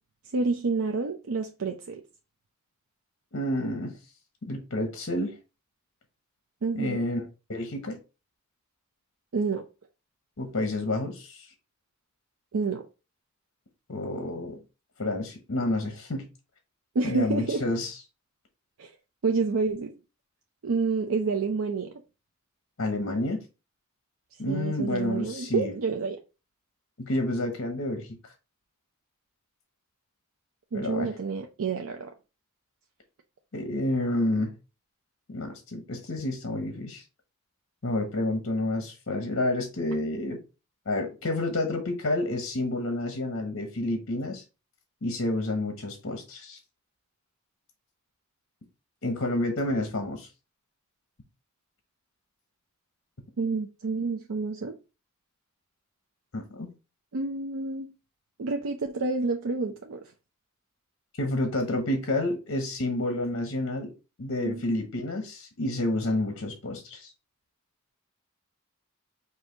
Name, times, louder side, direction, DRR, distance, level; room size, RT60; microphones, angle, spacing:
voice 1, 0.3-2.0 6.6-7.0 9.3-9.7 12.5-12.8 16.9-17.6 18.8-18.9 19.2-19.9 20.6-21.9 24.5-26.2 30.7-32.1 53.4-54.8 57.1-57.9 58.4-60.0 64.4-64.6, right 4 dB, 85° right, 0.5 m, -29 dB
voice 2, 3.3-4.0 4.4-5.3 6.7-8.0 10.4-11.5 13.9-14.6 15.0-16.2 17.0-18.0 22.8-23.4 24.4-25.7 27.0-28.2 30.7-31.1 33.5-34.5 35.3-37.0 37.8-40.4 40.9-44.4 45.0-46.6 49.0-50.3 56.3-56.7 61.2-63.9 64.2-67.1, left 1 dB, 60° left, 0.9 m, -29 dB
4.9 x 2.7 x 3.8 m
head